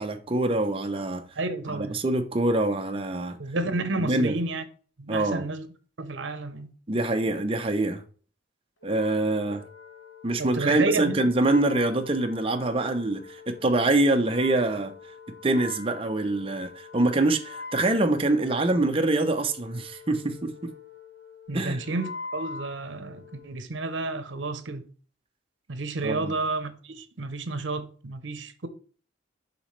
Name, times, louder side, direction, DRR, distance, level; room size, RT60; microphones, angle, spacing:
voice 1, 0.0-1.2 1.7-3.4 4.0-4.4 5.1-5.4 6.9-8.0 8.8-9.6 10.2-14.9 15.4-20.7 21.5-21.8 26.0-26.4, right 2 dB, 30° right, 0.7 m, -25 dB
voice 2, 1.3-1.9 3.4-4.6 5.0-5.7 6.0-6.7 10.4-11.2 21.5-24.8 25.7-28.7, right 3 dB, 75° right, 0.8 m, -31 dB
Wind instrument woodwind instrument, 8.8-23.5, left 4 dB, 85° left, 1.2 m, -44 dB
6.9 x 5.1 x 3.2 m
head